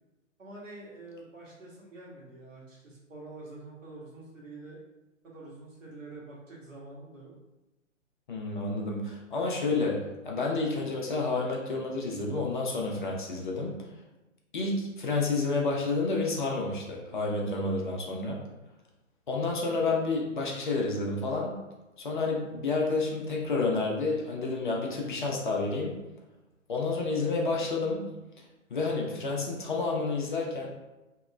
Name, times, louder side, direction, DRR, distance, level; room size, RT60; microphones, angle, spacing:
voice 1, 0.4-4.8 5.2-7.3, right 2 dB, 75° right, -4 dB, 1.3 m, -46 dB
voice 2, 8.3-10.0 10.2-13.8 14.5-18.4 19.3-21.6 22.0-25.9 26.7-28.0 28.7-30.7, left 3 dB, 40° left, -1 dB, 0.6 m, -30 dB
2.9 x 2.8 x 2.4 m, 1.0 s
figure-of-eight pair, 130°, 39 cm